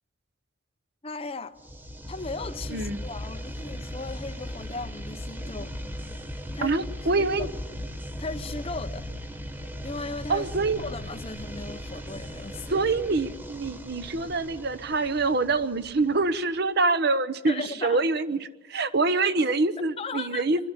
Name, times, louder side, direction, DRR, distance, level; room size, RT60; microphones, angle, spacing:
voice 1, 1.0-1.6 2.1-5.8 6.5-6.8 7.2-7.5 8.2-9.1 9.8-10.5 10.8-12.7 17.5-18.0 20.0-20.4, left 3 dB, 30° left, 0.9 m, -36 dB
sound 1, 1.6-16.4, equal, 10° right, 1.1 m, -38 dB
voice 2, 2.7-3.0 6.6-7.5 10.3-10.8 12.7-20.7, right 3 dB, 60° right, 0.9 m, -25 dB
25.0 x 12.0 x 9.8 m
head